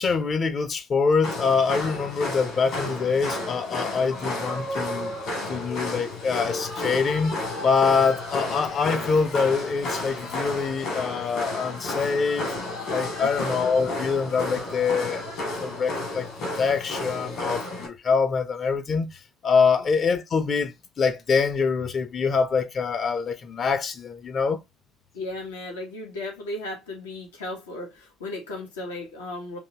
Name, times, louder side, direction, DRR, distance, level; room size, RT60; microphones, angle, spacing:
voice 1, 0.0-5.1 5.5-12.5 12.9-15.2 15.6-24.6, left 5 dB, 40° left, 0.8 m, -25 dB
sound 1, 1.2-17.9, left 2 dB, 60° left, 2.3 m, -32 dB
voice 2, 25.1-29.6, left 2 dB, 80° left, 1.4 m, -35 dB
5.2 x 2.9 x 2.9 m
figure-of-eight pair, 55°, 0 cm